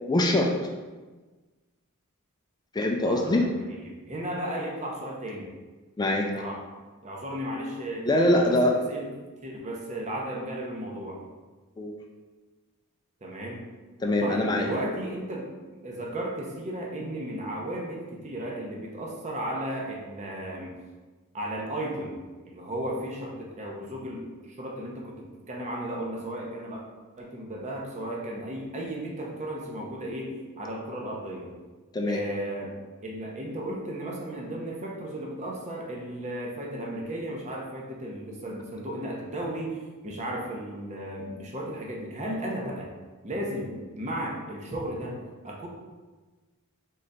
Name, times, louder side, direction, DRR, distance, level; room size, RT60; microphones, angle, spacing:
voice 1, 0.1-0.5 2.7-3.4 6.0-6.3 8.1-8.7 11.8-11.9 14.0-14.7 31.9-32.2, left 1 dB, 20° left, 1 dB, 0.3 m, -23 dB
voice 2, 3.0-5.5 6.4-6.6 7.0-8.1 8.5-9.0 9.4-11.2 13.2-13.7 14.2-15.5 15.8-20.7 21.3-22.2 22.5-25.2 25.5-26.8 27.2-31.5 32.0-32.8 33.0-42.9 43.2-45.2 45.4-45.7, right 1 dB, 30° right, -1 dB, 0.7 m, -34 dB
3.9 x 3.3 x 4.0 m, 1.3 s
head